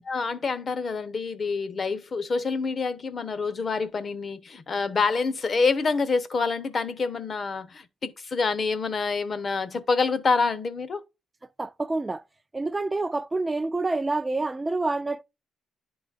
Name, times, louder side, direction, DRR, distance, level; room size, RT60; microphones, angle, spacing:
voice 1, 0.0-11.0, left 4 dB, 45° left, 0.9 m, -27 dB
voice 2, 11.6-12.2 12.5-15.2, right 2 dB, 20° right, 0.4 m, -27 dB
10.5 x 3.9 x 2.5 m
cardioid pair, 90°, 0 cm